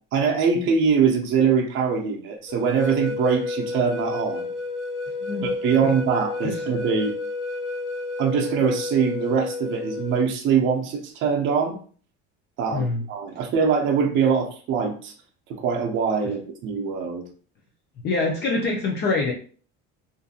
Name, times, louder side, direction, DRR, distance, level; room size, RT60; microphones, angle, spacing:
voice 1, 0.1-4.5 5.4-7.2 8.2-11.8 12.6-15.1 15.5-17.2, right 6 dB, 45° right, 2 dB, 0.5 m, -23 dB
sound 1, 2.5-10.3, left 3 dB, ahead, 1.0 m, -31 dB
voice 2, 5.2-5.5 6.4-6.6 12.7-13.0 18.0-19.3, left 3 dB, 35° left, 0 dB, 0.5 m, -25 dB
2.6 x 2.5 x 2.4 m, 0.41 s
cardioid pair, 150°, 30 cm